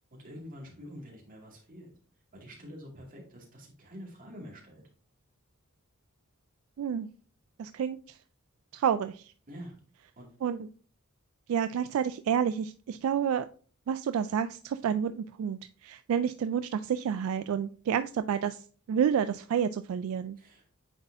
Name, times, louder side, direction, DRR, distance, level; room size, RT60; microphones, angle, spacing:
voice 1, 0.1-1.9 2.3-4.8 9.5-9.8 10.2-10.3 20.4-20.8, equal, 40° right, -1 dB, 2.2 m, -47 dB
voice 2, 6.8-7.1 7.6-8.0 8.7-9.2 10.4-10.7 11.5-13.5 13.9-18.6 18.9-20.4, right 8 dB, 75° right, 11 dB, 0.3 m, -29 dB
8.9 x 4.1 x 2.6 m, 0.42 s
head